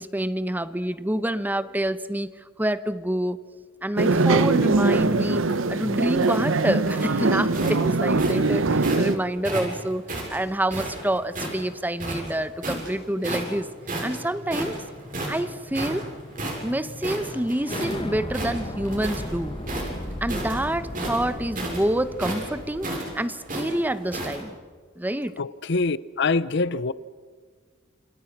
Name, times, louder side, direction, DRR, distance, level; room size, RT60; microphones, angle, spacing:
voice 1, 0.0-2.3 2.6-3.4 3.8-5.4 5.7-13.7 14.0-14.8 15.3-16.1 16.6-19.6 20.2-22.9 23.1-24.5 25.0-25.3, right 1 dB, 10° right, 0.9 m, -27 dB
sound 1, 4.0-9.2, right 3 dB, 85° right, 1.0 m, -22 dB
sound 2, 5.3-9.1 9.4-11.6 12.0-12.9 13.2-13.6 13.9-18.0 18.3-19.3 19.6-24.4, right 2 dB, 45° right, 7.2 m, -32 dB
sound 3, 13.2-23.2, left 1 dB, 25° left, 1.4 m, -37 dB
voice 2, 25.4-26.9, left 3 dB, 60° left, 0.7 m, -24 dB
28.5 x 27.5 x 6.0 m
head